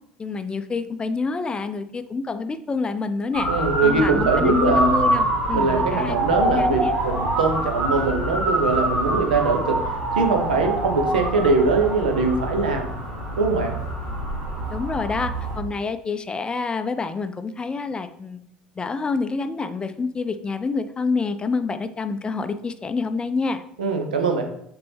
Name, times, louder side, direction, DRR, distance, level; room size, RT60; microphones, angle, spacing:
voice 1, 0.2-3.5 3.8-6.9 14.7-18.4 18.8-23.6, left 4 dB, 20° left, 11 dB, 0.5 m, -27 dB
Motor vehicle (road) / Siren, 3.3-15.6, right 1 dB, 55° right, 2.5 m, -25 dB
voice 2, 3.5-5.2 5.5-12.9 13.4-13.8 23.8-24.4, right 4 dB, 70° right, 4 dB, 0.9 m, -22 dB
6.7 x 4.4 x 3.4 m, 0.74 s
figure-of-eight pair, 65°, 5 cm